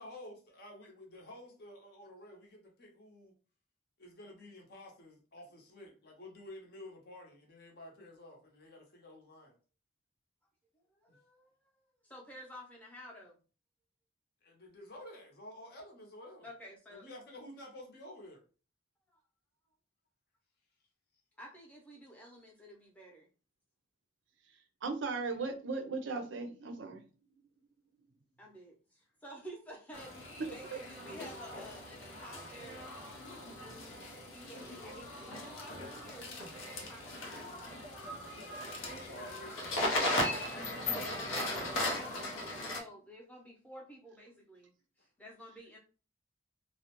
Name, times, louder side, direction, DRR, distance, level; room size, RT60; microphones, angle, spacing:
voice 1, 0.0-3.3 4.0-9.6 11.1-11.2 14.4-16.5 16.9-18.4 38.4-39.9 40.5-42.1, left 1 dB, 50° left, 0.7 m, -51 dB
voice 2, 10.9-13.4 16.4-17.1 19.1-19.2 21.4-23.3 28.4-30.2 30.5-32.8 34.3-37.7 39.5-40.3 40.9-42.4 42.7-44.7 45.2-45.8, equal, 10° left, 0.6 m, -51 dB
voice 3, 24.5-27.0 30.4-30.8, right 4 dB, 65° right, 0.5 m, -38 dB
sound 1, 29.9-42.8, left 1 dB, 85° left, 0.6 m, -38 dB
2.4 x 2.0 x 2.9 m
head